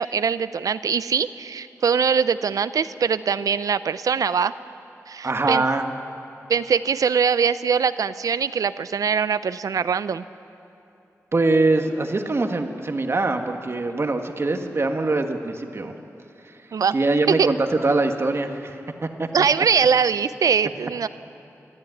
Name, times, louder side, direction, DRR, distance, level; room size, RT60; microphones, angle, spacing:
voice 1, 0.0-4.5 5.1-5.6 6.5-10.2 16.7-16.9 17.4-17.5 19.3-21.1, right 6 dB, 85° right, 15 dB, 0.5 m, -22 dB
voice 2, 5.2-5.8 11.3-16.0 16.9-17.6 17.8-19.3, right 2 dB, 45° right, 5 dB, 1.6 m, -23 dB
23.5 x 13.0 x 9.3 m, 2.7 s
cardioid pair, 60°, 6 cm